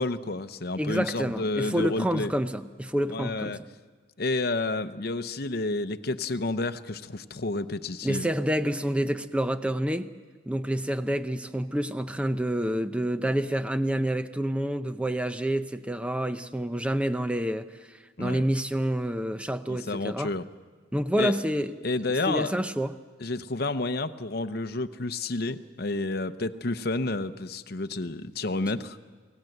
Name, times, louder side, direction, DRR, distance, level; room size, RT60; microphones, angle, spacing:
voice 1, 0.0-2.3 3.1-3.6 4.2-8.3 18.2-18.4 19.7-20.4 21.2-21.3 21.8-22.5 23.2-29.0, left 2 dB, 50° left, 11 dB, 0.8 m, -30 dB
voice 2, 0.8-3.6 8.0-10.1 10.5-20.4 20.9-21.7 22.3-23.0, equal, 5° right, 10 dB, 0.6 m, -28 dB
28.5 x 18.0 x 7.9 m, 1.5 s
head